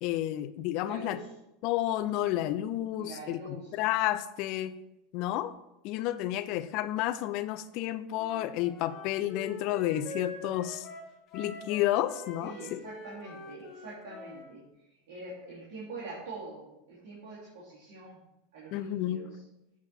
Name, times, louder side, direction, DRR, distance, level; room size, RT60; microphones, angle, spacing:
voice 1, 0.0-1.2 1.6-4.7 5.1-5.5 5.8-10.9 11.3-12.8 18.7-19.2, left 13 dB, 55° left, 12 dB, 0.5 m, -31 dB
voice 2, 0.9-1.3 3.0-3.8 12.4-18.2 18.5-19.4, right 2 dB, 75° right, -9 dB, 2.7 m, -44 dB
Wind instrument woodwind instrument, 8.1-14.5, left 2 dB, 40° left, 1.5 m, -45 dB
8.1 x 4.8 x 4.3 m, 0.89 s
hypercardioid pair, 110°, 0 cm